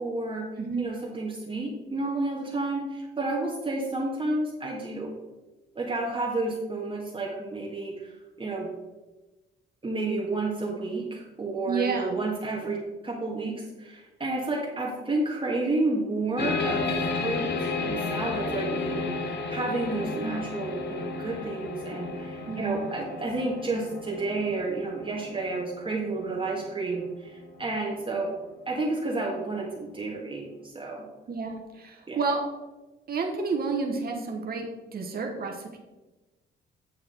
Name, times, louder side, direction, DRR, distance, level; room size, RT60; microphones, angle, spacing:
voice 1, 0.0-0.5 0.8-5.1 5.7-8.1 8.4-8.7 9.8-16.9 17.2-28.3 28.7-31.1 32.1-32.2, right 2 dB, 25° right, -3 dB, 1.6 m, -31 dB
voice 2, 0.6-0.9 11.7-12.1 20.2-20.4 22.5-22.8 31.3-32.4 33.1-35.8, right 4 dB, 50° right, 3 dB, 1.2 m, -30 dB
sound 1, 16.4-27.6, left 4 dB, 60° left, 1.1 m, -33 dB
9.4 x 4.8 x 4.4 m, 1.1 s
cardioid pair, 90°, 20 cm